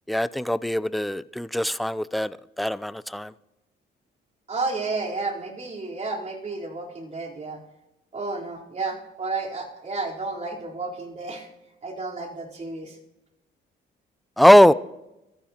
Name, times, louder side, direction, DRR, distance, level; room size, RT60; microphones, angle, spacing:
voice 1, 0.1-3.3 14.4-14.7, equal, ahead, 0.4 m, -20 dB
voice 2, 4.5-7.6 8.1-11.5 11.8-13.0, right 3 dB, 35° right, 3.9 m, -31 dB
26.0 x 14.5 x 2.9 m
cardioid pair, 90°, 20 cm